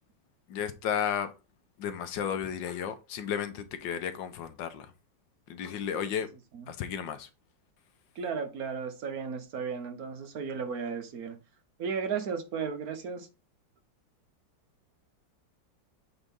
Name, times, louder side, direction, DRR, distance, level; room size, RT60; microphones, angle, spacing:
voice 1, 0.5-1.3 1.8-4.9 5.5-6.3 6.7-7.3, left 8 dB, 80° left, 1.5 m, -33 dB
voice 2, 8.2-11.4 11.8-13.3, right 6 dB, 60° right, 1.3 m, -34 dB
8.0 x 3.9 x 3.7 m
omnidirectional pair, 2.0 m